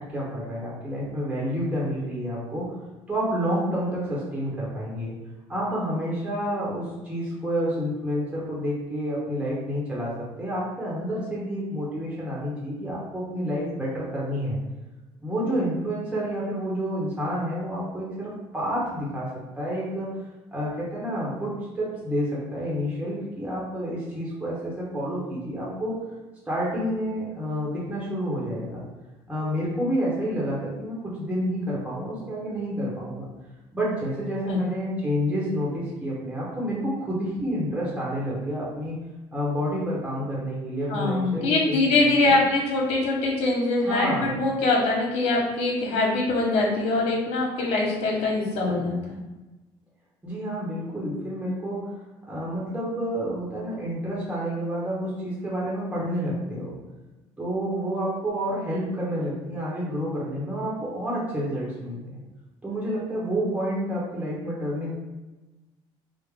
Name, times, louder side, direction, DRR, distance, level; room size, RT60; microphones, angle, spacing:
voice 1, 0.0-2.7 3.1-5.1 5.5-14.6 15.2-20.1 20.5-26.0 26.5-28.8 29.3-33.3 33.7-38.9 39.3-42.4 43.8-44.4 50.2-51.9 52.3-56.7 57.4-62.2 62.6-64.9, equal, 10° right, -6 dB, 1.0 m, -29 dB
voice 2, 40.9-49.2, left 2 dB, 70° left, -2 dB, 1.1 m, -23 dB
3.5 x 2.0 x 3.6 m, 1.1 s
cardioid pair, 115°, 11 cm